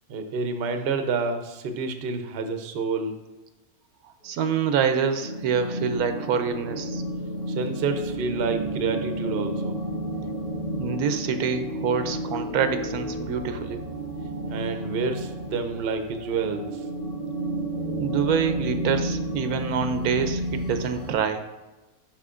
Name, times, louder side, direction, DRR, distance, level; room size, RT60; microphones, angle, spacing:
voice 1, 0.1-3.2 7.6-9.7 14.5-16.6, right 4 dB, 55° right, 6 dB, 0.7 m, -28 dB
voice 2, 4.2-7.0 10.8-13.8 18.0-21.5, right 7 dB, 80° right, 8 dB, 1.1 m, -26 dB
sound 1, 4.6-21.1, right 1 dB, 75° left, 2.3 m, -31 dB
10.5 x 5.1 x 2.4 m, 1.1 s
omnidirectional pair, 1.6 m